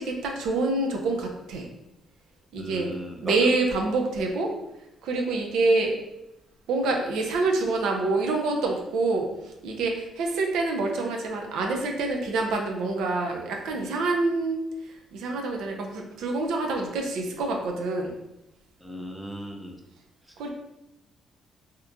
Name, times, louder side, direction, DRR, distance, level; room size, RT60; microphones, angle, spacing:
voice 1, 0.0-1.7 2.5-2.9 3.2-4.5 5.0-6.0 6.7-14.6 14.9-18.1 20.4-20.5, right 3 dB, 85° right, 2 dB, 0.5 m, -26 dB
voice 2, 2.6-3.4 18.8-19.7, equal, 5° right, 2 dB, 0.4 m, -36 dB
2.9 x 2.4 x 3.5 m, 0.89 s
cardioid pair, 130°, 0 cm